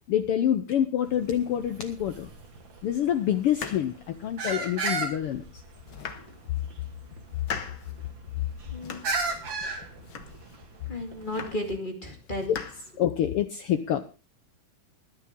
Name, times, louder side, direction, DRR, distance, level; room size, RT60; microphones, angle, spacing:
voice 1, 0.1-2.3 2.8-5.6 12.5-12.6 13.0-14.0, left 10 dB, 85° left, 10 dB, 1.2 m, -26 dB
sound 1, 1.0-11.7, right 3 dB, 40° right, 2.9 m, -36 dB
sound 2, 3.4-4.7 5.3-5.4 5.8-6.7 7.1-7.9 8.4-9.3 9.6-10.6 11.0-11.8 12.1-13.4, left 6 dB, 55° left, 1.6 m, -41 dB
voice 2, 8.7-9.0 10.9-12.5, left 1 dB, 15° left, 3 dB, 2.1 m, -33 dB
20.5 x 10.0 x 3.7 m, 0.33 s
omnidirectional pair, 3.5 m